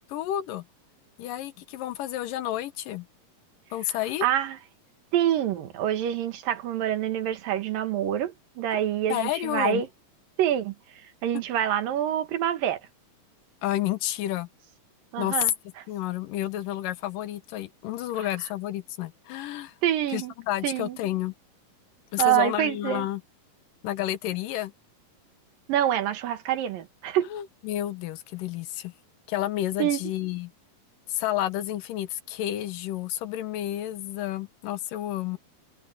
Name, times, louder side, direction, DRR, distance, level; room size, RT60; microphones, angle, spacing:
voice 1, 0.1-0.6 1.2-3.1 3.7-4.3 9.1-9.8 13.6-14.5 15.2-15.4 15.9-19.7 20.1-21.3 22.1-23.2 23.8-24.7 27.3-28.9 29.3-30.5 31.1-35.4, left 13 dB, 80° left, 2.7 m, -30 dB
voice 2, 4.2-4.6 5.1-9.9 10.4-10.7 11.2-12.8 15.1-15.5 19.8-20.3 20.6-21.0 22.2-23.1 25.7-27.3 29.8-30.0, right 11 dB, 90° right, 3.2 m, -26 dB
omnidirectional pair, 3.9 m